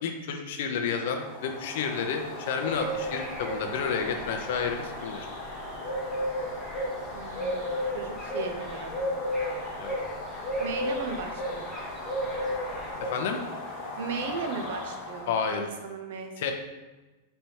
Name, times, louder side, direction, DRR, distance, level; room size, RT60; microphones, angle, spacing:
voice 1, 0.0-5.3 9.8-10.0 13.1-13.4 15.3-15.6 16.4-16.5, left 6 dB, 60° left, 5 dB, 0.6 m, -30 dB
sound 1, 0.9-15.5, left 1 dB, 30° left, 1.0 m, -34 dB
sound 2, 2.7-13.0, left 1 dB, ahead, 0.6 m, -46 dB
voice 2, 7.1-9.2 10.6-11.8 14.0-16.3, right 4 dB, 65° right, 4 dB, 0.6 m, -37 dB
4.4 x 3.3 x 2.8 m, 1.1 s
supercardioid pair, 160°, 0 cm